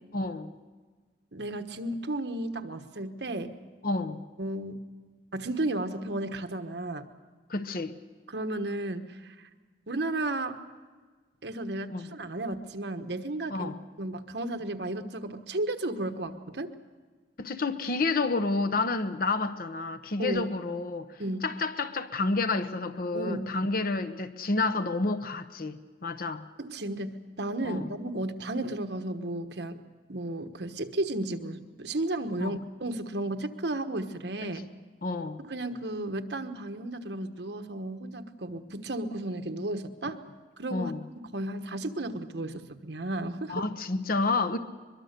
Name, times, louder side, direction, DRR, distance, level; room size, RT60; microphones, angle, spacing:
voice 1, 0.1-0.5 3.8-4.2 7.5-7.9 11.9-12.1 13.5-13.8 17.4-26.5 27.6-27.9 32.4-32.5 35.0-35.4 40.7-41.1 43.5-44.6, left 3 dB, 55° left, 0.9 m, -30 dB
voice 2, 1.3-3.5 4.4-4.8 5.3-7.1 8.3-9.5 9.9-10.6 11.4-13.7 14.0-16.7 20.2-20.5 21.2-21.5 23.1-23.5 26.6-29.8 30.1-34.6 35.4-40.2 40.6-40.9 41.3-43.6, right 1 dB, 70° right, 1.3 m, -33 dB
23.0 x 23.0 x 6.7 m
head